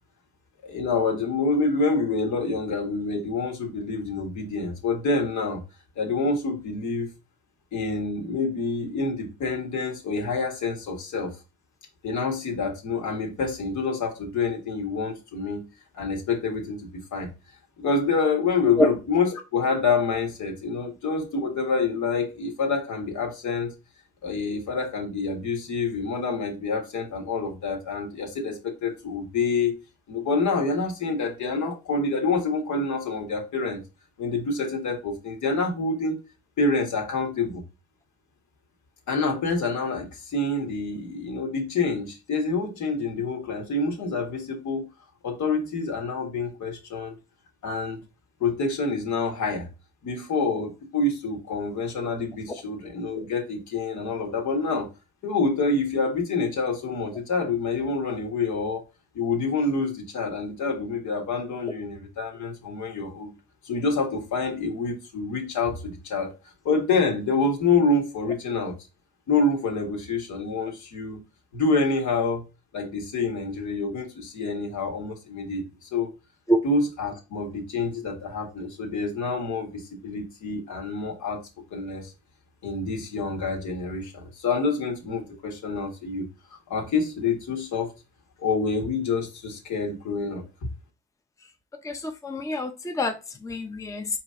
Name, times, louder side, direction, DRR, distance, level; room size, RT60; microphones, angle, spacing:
voice 1, 0.6-5.6 6.0-7.1 7.7-11.4 12.0-15.7 15.9-17.3 17.8-23.7 24.2-29.7 30.1-33.8 34.2-36.2 36.6-37.6 39.1-44.9 45.2-47.2 47.6-48.0 48.4-49.7 50.0-54.9 55.2-58.8 59.1-63.3 63.6-66.3 66.6-68.7 69.3-71.2 71.5-72.4 72.7-75.6 75.9-76.1 76.6-81.4 81.7-82.1 82.6-86.3 86.7-87.9 88.4-90.4, left 3 dB, 75° left, 1.6 m, -27 dB
voice 2, 91.8-93.2 93.4-94.1, equal, 10° left, 0.7 m, -25 dB
4.7 x 3.0 x 3.7 m
cardioid pair, 90°, 30 cm